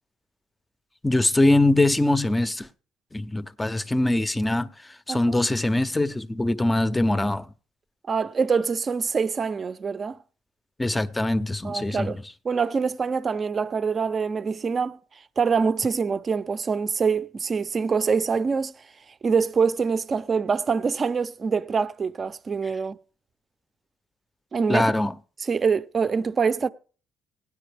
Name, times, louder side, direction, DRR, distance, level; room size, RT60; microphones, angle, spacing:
voice 1, 1.0-2.7 3.1-4.7 5.1-7.5 10.8-12.2 24.7-25.1, left 2 dB, 10° left, 0.6 m, -22 dB
voice 2, 8.1-10.2 11.6-12.2 12.4-15.0 15.4-18.7 19.2-23.0 24.5-24.9 25.4-26.7, right 5 dB, 35° right, 0.6 m, -25 dB
17.5 x 9.9 x 3.4 m
cardioid pair, 105°, 0 cm